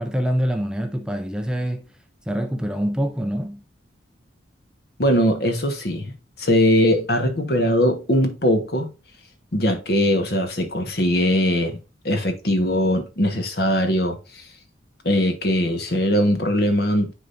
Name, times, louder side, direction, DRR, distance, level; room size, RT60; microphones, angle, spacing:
voice 1, 0.0-1.9 2.3-3.6, equal, 5° right, 0.5 m, -25 dB
voice 2, 5.0-8.9 9.5-11.8 12.0-14.4 15.0-17.1, equal, 55° left, 1.4 m, -21 dB
9.9 x 3.8 x 2.6 m
head